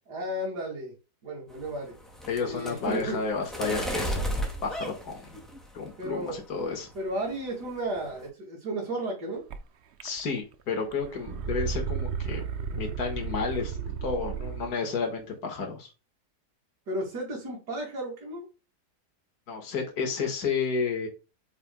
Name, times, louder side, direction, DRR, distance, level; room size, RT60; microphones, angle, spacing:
voice 1, 0.1-0.9 1.2-2.0 2.4-3.2 6.0-6.4 6.9-9.4 16.9-18.5, right 1 dB, 80° right, -3 dB, 2.6 m, -33 dB
sound 1, 1.5-5.9 6.3-6.8 7.1-7.4 7.6-8.3, equal, ahead, 1.9 m, -34 dB
voice 2, 2.3-5.4 5.7-6.9 10.0-12.4 12.7-15.9 19.5-21.1, left 5 dB, 65° left, 3 dB, 2.2 m, -31 dB
sound 2, 9.5-9.6 10.0-10.5 10.8-14.8, right 6 dB, 55° right, 0.7 m, -33 dB
8.7 x 5.5 x 2.2 m, 0.31 s
omnidirectional pair, 1.8 m